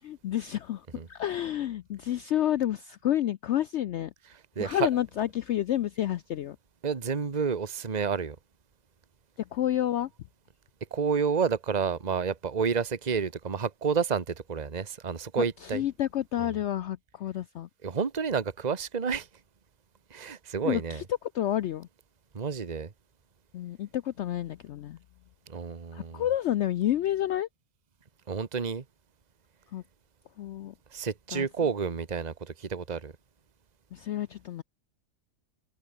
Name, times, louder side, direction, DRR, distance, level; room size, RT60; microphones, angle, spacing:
voice 1, 0.0-4.1 4.6-6.6 9.5-10.1 15.4-17.7 20.6-21.0 21.3-21.9 23.5-25.0 25.9-27.5 29.7-29.8 30.4-30.7 31.3-31.5 33.9-34.6, left 12 dB, 70° left, 0.7 m, -30 dB
voice 2, 4.6-4.9 6.8-8.4 10.9-15.8 16.4-16.5 17.8-19.3 20.1-21.0 22.3-22.9 25.5-26.2 28.3-28.8 30.9-33.1, right 6 dB, 30° right, 1.3 m, -30 dB
omnidirectional pair, 1.6 m